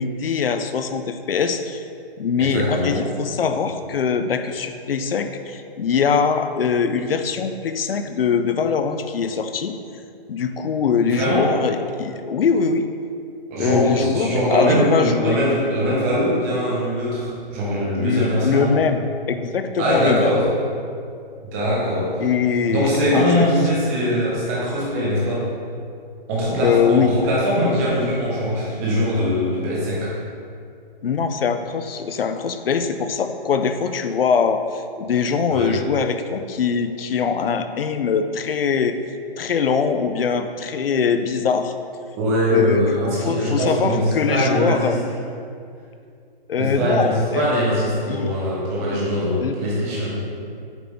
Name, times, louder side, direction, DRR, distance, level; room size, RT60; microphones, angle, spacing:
voice 1, 0.0-1.8 2.2-9.8 10.3-12.9 13.6-15.4 18.0-20.4 22.2-23.5 26.6-27.1 31.0-39.0 39.4-41.7 42.5-45.0 46.5-47.5 48.1-48.3 48.9-49.0 49.4-49.6, left 6 dB, 70° left, 8 dB, 0.7 m, -22 dB
voice 2, 2.4-3.0 11.1-11.5 13.5-18.7 19.8-20.5 21.4-22.2 22.7-25.5 26.3-30.1 35.5-35.8 42.2-45.0 46.6-50.2, equal, 15° right, -7 dB, 1.3 m, -21 dB
9.0 x 5.9 x 3.6 m, 2.4 s
hypercardioid pair, 175°, 30 cm